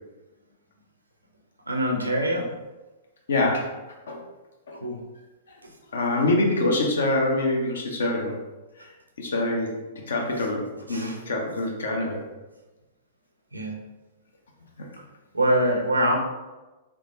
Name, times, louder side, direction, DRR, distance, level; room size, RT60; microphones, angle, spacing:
voice 1, 1.7-2.5 4.7-5.0 5.6-5.7 10.9-11.2 13.5-13.8 15.3-16.2, right 1 dB, 85° right, 1 dB, 0.6 m, -24 dB
voice 2, 3.3-3.7 4.1-4.2 4.7-4.8 5.9-8.4 8.8-8.9 9.2-9.8 10.1-12.2, left 2 dB, 65° left, 0 dB, 0.8 m, -25 dB
3.6 x 3.3 x 2.6 m, 1.1 s
figure-of-eight pair, 105°, 0 cm